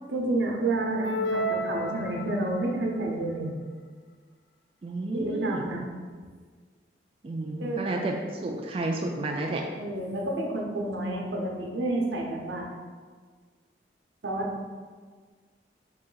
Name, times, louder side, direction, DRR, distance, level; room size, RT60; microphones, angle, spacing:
voice 1, 0.1-3.5 5.1-5.8 7.6-7.8 9.7-12.7 14.2-14.5, right 2 dB, 85° right, 0 dB, 0.7 m, -29 dB
sound 1, 1.0-2.7, equal, 90° left, 0.4 m, -31 dB
voice 2, 4.8-5.7 7.2-9.6, right 2 dB, 30° right, 1 dB, 0.3 m, -31 dB
4.1 x 3.0 x 3.8 m, 1.6 s
head